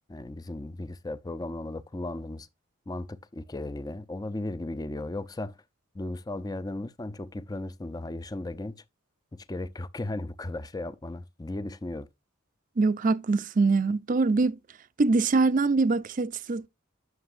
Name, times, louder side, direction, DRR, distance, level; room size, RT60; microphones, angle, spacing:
voice 1, 0.1-2.5 2.9-5.5 5.9-8.8 9.3-12.1, left 2 dB, 20° left, 0.4 m, -36 dB
voice 2, 12.8-14.6 15.0-16.7, right 3 dB, 40° right, 0.5 m, -23 dB
9.4 x 6.9 x 2.5 m
head